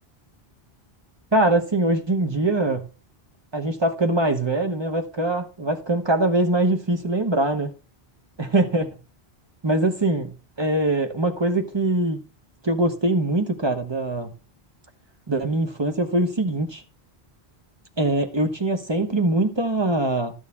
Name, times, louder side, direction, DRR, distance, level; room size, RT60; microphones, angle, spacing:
voice 1, 1.3-2.8 3.5-7.7 8.4-8.9 9.6-10.3 10.6-12.2 12.6-14.3 15.3-16.8 18.0-20.3, right 2 dB, 25° right, 1.1 m, -22 dB
12.5 x 6.6 x 3.6 m
omnidirectional pair, 1.1 m